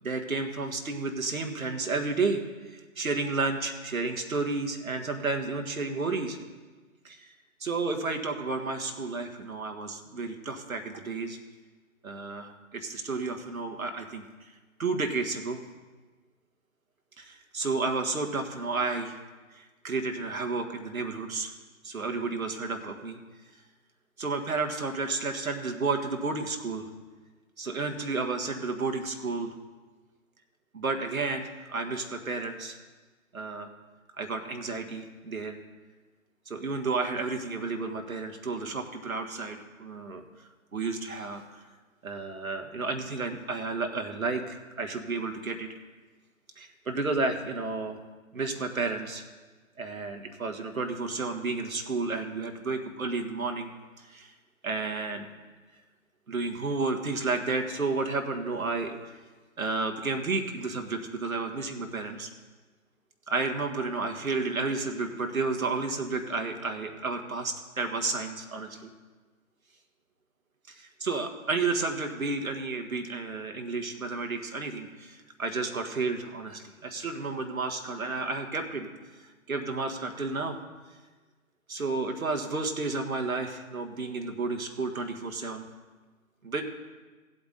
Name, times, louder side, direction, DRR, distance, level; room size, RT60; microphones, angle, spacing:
voice 1, 0.0-6.4 7.0-7.3 7.6-11.4 12.0-14.2 14.8-15.6 17.2-19.2 19.5-21.5 21.8-23.2 24.2-26.9 27.6-29.5 30.7-32.8 33.3-33.7 34.2-35.6 36.5-40.2 40.7-41.6 42.0-45.7 46.6-48.0 48.3-49.3 49.8-53.7 54.0-54.3 54.6-55.3 56.3-58.9 59.6-62.3 63.3-68.9 70.7-78.9 79.5-80.6 81.7-85.7 86.4-86.6, right 3 dB, 75° right, 5 dB, 1.5 m, -31 dB
17.0 x 8.0 x 4.0 m, 1.3 s
figure-of-eight pair, 155°, 42 cm